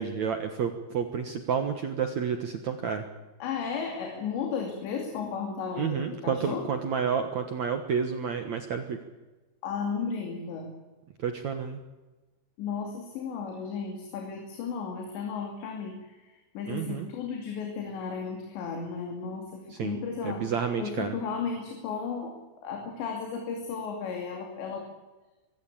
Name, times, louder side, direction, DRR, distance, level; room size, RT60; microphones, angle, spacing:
voice 1, 0.0-3.0 5.8-9.0 11.2-11.8 16.7-17.1 19.7-19.9 20.2-21.1, right 7 dB, 80° right, 7 dB, 1.6 m, -30 dB
voice 2, 3.4-6.6 9.6-10.7 12.6-20.4 20.8-22.3 22.6-24.9, left 5 dB, 70° left, 2 dB, 4.8 m, -34 dB
24.0 x 16.5 x 8.5 m, 1.2 s
omnidirectional pair, 5.4 m